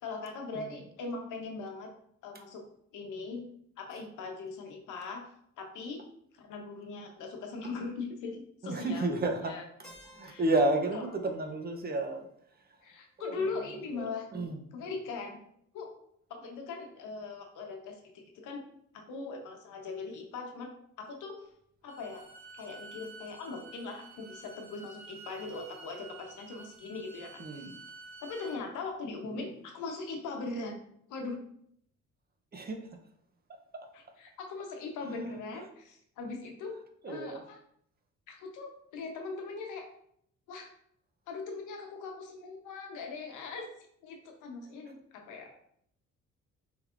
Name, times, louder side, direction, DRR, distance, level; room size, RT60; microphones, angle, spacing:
voice 1, 0.0-1.9 2.2-2.6 2.9-3.5 3.8-5.3 5.6-6.0 6.3-9.2 9.5-9.6 10.2-10.4 10.9-11.0 12.8-14.3 14.7-15.4 15.7-15.9 16.3-18.7 18.9-21.5 21.8-22.3 22.6-27.7 28.2-30.8 31.1-31.4 34.2-36.8 37.1-37.6 38.3-39.9 40.5-40.7 41.3-43.7 44.0-45.6, left 4 dB, 85° left, 3 dB, 0.9 m, -40 dB
voice 2, 8.6-9.6 10.0-12.3 13.2-14.6 27.4-27.8 29.2-29.3 32.5-32.9 33.7-33.9 37.0-37.4, right 2 dB, 30° right, 4 dB, 0.7 m, -32 dB
Keyboard (musical), 9.8-13.7, right 1 dB, ahead, 1.7 m, -59 dB
Bowed string instrument, 21.9-28.6, right 3 dB, 65° right, 1.0 m, -50 dB
5.8 x 3.4 x 2.5 m, 0.70 s
cardioid pair, 90°, 30 cm